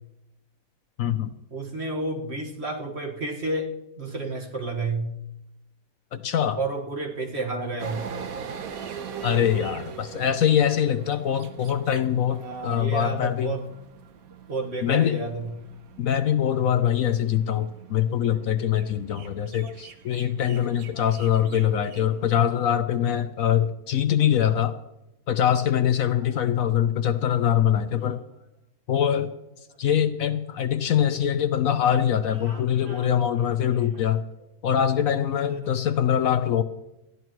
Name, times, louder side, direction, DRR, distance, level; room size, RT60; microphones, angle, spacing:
voice 1, 1.0-1.3 6.1-6.6 9.2-13.5 14.8-15.2 16.0-24.8 25.3-28.2 28.9-29.3 29.8-34.2 34.6-36.6, left 9 dB, 65° left, 10 dB, 1.0 m, -23 dB
voice 2, 1.5-5.1 6.5-8.0 12.4-13.7 14.5-15.5 19.6-19.7 20.9-21.1 21.4-21.6 32.4-33.1 33.7-34.1, right 2 dB, 40° right, 0 dB, 1.9 m, -31 dB
sound 1, 7.8-22.4, right 7 dB, 65° right, 1.3 m, -42 dB
20.5 x 14.0 x 3.1 m, 0.92 s
omnidirectional pair, 1.7 m